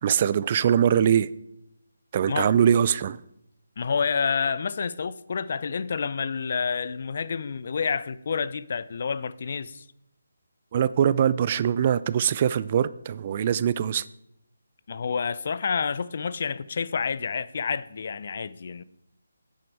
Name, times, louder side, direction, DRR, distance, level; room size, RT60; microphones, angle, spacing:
voice 1, 0.0-1.3 2.1-3.2 10.7-14.0, right 9 dB, 35° right, 0.3 m, -22 dB
voice 2, 3.8-9.8 14.9-18.8, left 5 dB, 50° left, 0.5 m, -29 dB
9.4 x 9.2 x 4.6 m
figure-of-eight pair, 155°, 0 cm